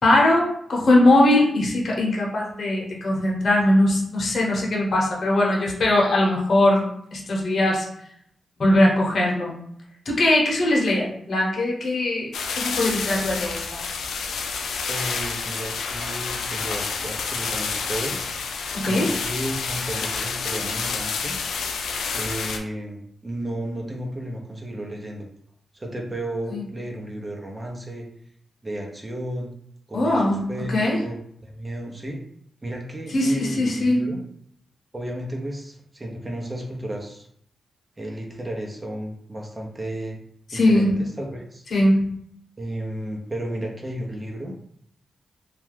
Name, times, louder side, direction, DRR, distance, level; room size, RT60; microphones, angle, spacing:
voice 1, 0.0-6.8 7.1-7.8 8.6-9.5 10.1-12.3 12.6-13.8 18.7-19.1 26.5-26.6 29.9-31.0 33.1-34.0 40.5-41.0 41.7-42.0, left 1 dB, 60° left, -2 dB, 0.9 m, -20 dB
sound 1, 12.3-22.6, left 5 dB, 90° left, 0.3 m, -29 dB
voice 2, 14.9-18.2 18.8-21.4 22.1-25.3 25.7-28.1 28.6-29.5 29.9-32.2 32.6-34.2 34.9-37.3 38.0-40.2 40.5-41.6 42.6-44.5, right 1 dB, 25° right, 0 dB, 0.7 m, -33 dB
2.4 x 2.2 x 3.3 m, 0.68 s
cardioid pair, 55°, 0 cm